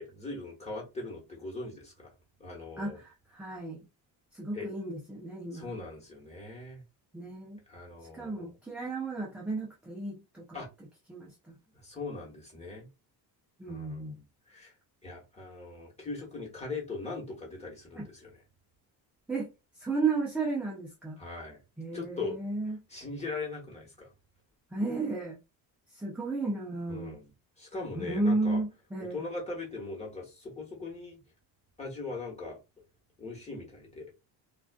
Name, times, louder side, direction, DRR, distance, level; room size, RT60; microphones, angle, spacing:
voice 1, 0.0-2.1 2.4-3.0 4.5-4.7 5.5-6.8 7.7-8.5 10.5-10.7 11.7-12.9 13.7-14.7 15.0-18.3 21.2-21.6 21.9-22.4 22.9-24.1 26.9-27.3 27.6-28.6 29.0-31.2 31.8-32.6 33.2-34.1, left 3 dB, 15° left, 1.2 m, -40 dB
voice 2, 2.8-3.8 4.3-5.8 7.1-7.6 8.1-10.6 11.1-11.5 13.6-14.2 17.9-18.1 19.3-19.5 19.8-21.2 21.8-22.8 24.7-25.4 25.9-27.1 28.0-29.2, right 3 dB, 5° right, 0.4 m, -33 dB
2.4 x 2.3 x 2.2 m
cardioid pair, 110°, 46 cm